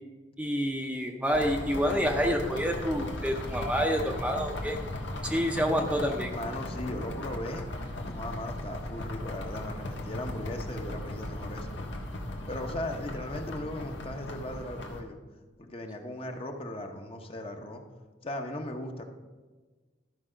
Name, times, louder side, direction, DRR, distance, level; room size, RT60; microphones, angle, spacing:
voice 1, 0.4-4.8 5.2-6.3, equal, 5° right, 2 dB, 0.6 m, -28 dB
sound 1, 1.3-15.0, left 1 dB, 85° left, 1.4 m, -37 dB
voice 2, 6.3-7.7 8.0-11.9 12.5-15.2 15.6-17.8 18.2-19.0, left 1 dB, 30° left, 4 dB, 0.8 m, -38 dB
12.5 x 5.5 x 4.9 m, 1.3 s
head